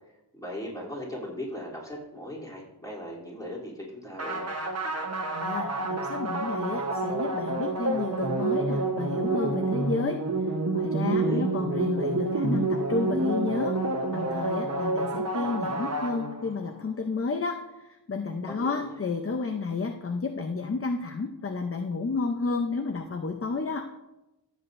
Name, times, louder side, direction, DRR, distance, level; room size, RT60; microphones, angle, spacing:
voice 1, 0.3-4.5 11.0-11.5 18.4-19.0, left 1 dB, 10° left, -4 dB, 3.1 m, -38 dB
sound 1, 4.2-16.7, right 2 dB, 35° right, 1.0 m, -28 dB
voice 2, 5.3-10.2 10.7-13.8 14.1-23.9, left 4 dB, 30° left, 5 dB, 0.7 m, -31 dB
14.5 x 8.1 x 2.6 m, 0.94 s
wide cardioid pair, 100°, 43 cm